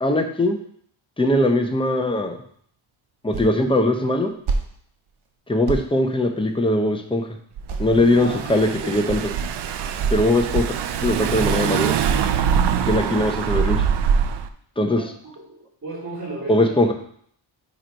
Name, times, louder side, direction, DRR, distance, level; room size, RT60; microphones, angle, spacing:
voice 1, 0.0-0.6 1.2-2.3 3.2-4.3 5.5-7.3 7.8-9.2 10.1-10.6 11.0-11.9 12.9-13.8 14.8-15.1 16.5-16.9, left 1 dB, 10° left, 4 dB, 0.6 m, -20 dB
sound 1, 3.3-3.6 3.9-4.7 5.1-5.3 5.6-5.9 7.1-7.2 7.7-8.1 8.6-8.7 8.9-9.3 10.0-10.2 10.5-10.9 11.3-11.5 12.1-12.4, right 4 dB, 70° right, 1.0 m, -28 dB
Car / Engine, 7.6-14.5, right 7 dB, 55° right, 0.5 m, -23 dB
voice 2, 8.2-8.5 8.8-9.0 14.9-15.1 15.4-16.8, right 2 dB, 25° right, -5 dB, 2.2 m, -34 dB
8.7 x 3.1 x 5.2 m, 0.63 s
wide cardioid pair, 145°, 50 cm